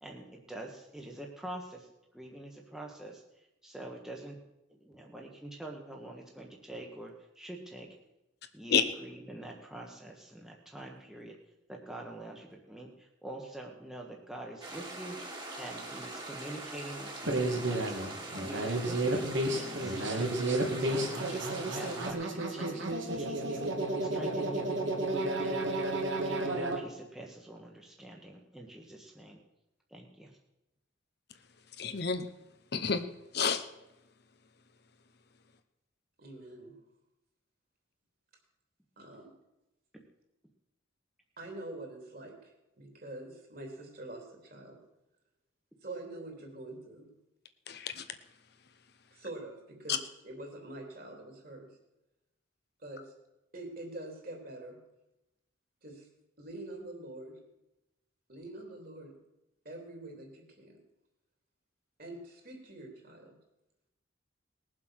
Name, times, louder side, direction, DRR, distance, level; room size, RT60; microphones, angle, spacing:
voice 1, 0.0-3.2 3.6-4.4 4.7-7.9 8.5-11.4 11.7-15.2 15.6-18.0 18.3-20.3 20.8-22.9 23.1-23.7 24.0-24.7 25.4-25.7 26.2-29.4 29.9-30.3, right 1 dB, 5° right, -1 dB, 1.4 m, -45 dB
sound 1, 14.6-22.1, right 2 dB, 20° right, 2.1 m, -43 dB
sound 2, 17.3-26.8, right 2 dB, 70° right, 2.3 m, -32 dB
voice 2, 31.8-32.3 32.7-33.0 33.3-33.6 47.7-48.0, left 6 dB, 55° left, 9 dB, 0.9 m, -29 dB
voice 3, 36.2-36.7 39.0-39.3 41.4-44.8 45.8-47.1 49.1-51.7 52.8-53.1 53.5-54.8 55.8-56.1 56.4-57.4 58.3-59.1 59.6-60.8 62.0-63.4, right 2 dB, 50° right, 2 dB, 3.3 m, -45 dB
20.0 x 7.5 x 6.4 m, 0.93 s
head